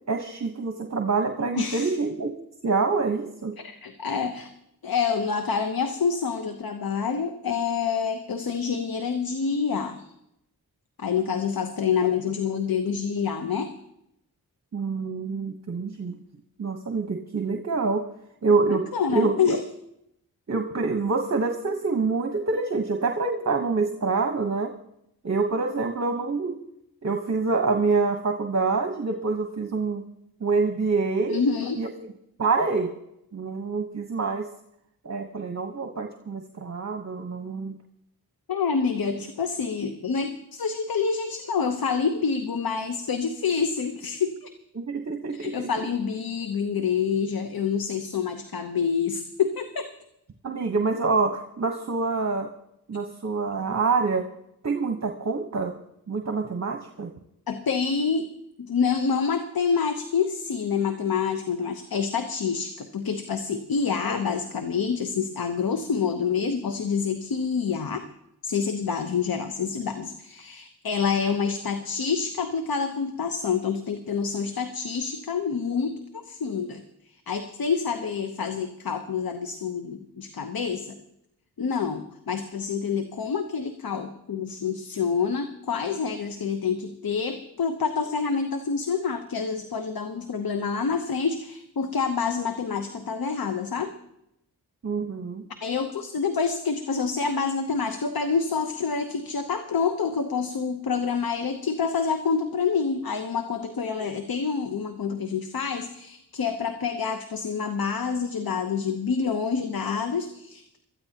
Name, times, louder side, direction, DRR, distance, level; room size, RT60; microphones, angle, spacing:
voice 1, 0.1-2.3 2.6-3.5 14.7-16.1 16.6-18.0 18.4-18.8 19.1-19.6 20.5-24.7 25.2-26.6 27.0-30.0 30.4-31.4 31.7-31.9 32.4-32.9 33.3-34.5 35.0-37.8 44.7-45.7 50.4-52.5 52.9-54.2 54.6-55.7 56.1-57.1 94.8-95.4, right 4 dB, 45° right, 4 dB, 1.2 m, -26 dB
voice 2, 1.5-1.9 3.6-4.5 4.8-10.1 11.0-13.7 18.7-19.6 31.3-31.8 38.5-44.5 45.3-49.9 57.5-58.3 58.6-68.1 68.4-76.0 76.2-76.8 77.3-81.0 81.6-93.9 95.6-110.8, left 6 dB, 65° left, 7 dB, 1.0 m, -27 dB
21.5 x 13.5 x 2.9 m, 0.80 s
cardioid pair, 45°, 38 cm